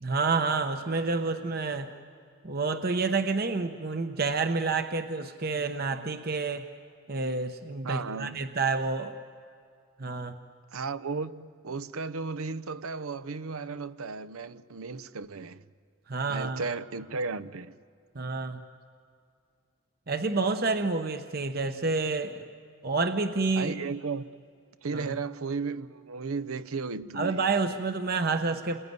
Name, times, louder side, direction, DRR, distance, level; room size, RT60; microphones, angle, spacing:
voice 1, 0.0-1.9 2.4-6.7 7.1-9.1 10.0-10.4 16.1-16.6 18.1-18.6 20.1-22.4 22.8-23.7 24.9-25.1 27.1-28.8, right 3 dB, 45° right, 0.9 m, -29 dB
voice 2, 7.8-8.4 10.7-15.6 16.3-17.8 23.6-24.3 24.8-27.4, right 4 dB, 85° right, 0.8 m, -35 dB
29.0 x 21.5 x 9.5 m
head